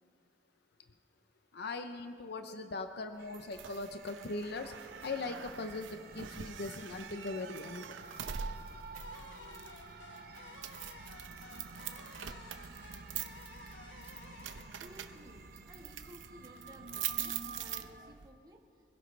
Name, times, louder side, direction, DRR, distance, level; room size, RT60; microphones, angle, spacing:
voice 1, 1.5-8.0 10.4-10.6, left 3 dB, 60° left, 7 dB, 0.7 m, -40 dB
sound 1, 3.2-18.1, right 5 dB, 55° right, 0.9 m, -52 dB
sound 2, 3.3-18.3, right 8 dB, 90° right, 0.8 m, -44 dB
sound 3, 8.9-15.9, left 4 dB, 80° left, 1.0 m, -55 dB
voice 2, 14.8-15.4 15.7-18.6, equal, 20° right, 0 dB, 1.6 m, -55 dB
24.5 x 17.0 x 3.3 m, 2.2 s
head